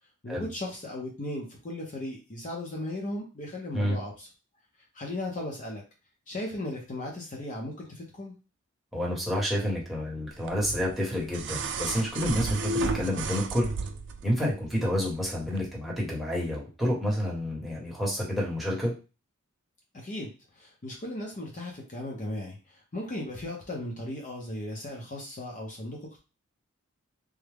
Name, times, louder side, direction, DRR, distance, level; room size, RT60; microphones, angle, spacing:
voice 1, 0.2-4.3 4.9-5.8 6.3-8.4 19.9-26.2, left 1 dB, 40° left, -1 dB, 0.7 m, -36 dB
voice 2, 8.9-13.7 14.2-18.9, equal, ahead, -5 dB, 1.1 m, -29 dB
sound 1, 10.5-14.2 15.5-15.6, right 3 dB, 60° right, 0.4 m, -32 dB
3.5 x 2.1 x 3.4 m, 0.31 s
head